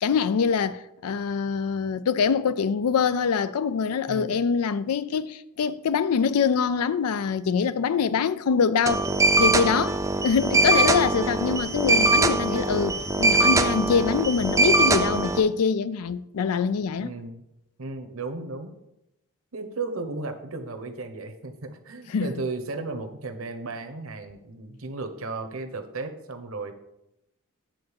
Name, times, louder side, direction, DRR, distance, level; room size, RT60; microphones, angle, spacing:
voice 1, 0.0-9.1 9.4-17.1 22.1-22.3, left 6 dB, 90° left, 0.4 m, -24 dB
sound 1, 8.9-15.4, right 2 dB, 15° right, 0.5 m, -22 dB
voice 2, 17.0-17.4 17.8-18.8 19.5-26.7, right 3 dB, 65° right, 1.0 m, -35 dB
9.1 x 3.8 x 7.0 m
head